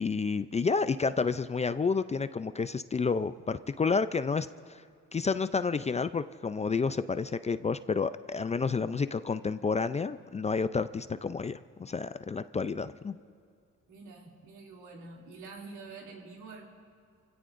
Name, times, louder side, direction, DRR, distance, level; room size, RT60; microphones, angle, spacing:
voice 1, 0.0-4.8 5.1-13.2, left 5 dB, 25° left, 12 dB, 0.4 m, -30 dB
voice 2, 13.9-16.7, right 3 dB, 80° right, -1 dB, 2.8 m, -47 dB
28.5 x 16.5 x 2.6 m, 2.3 s
cardioid pair, 90°, 30 cm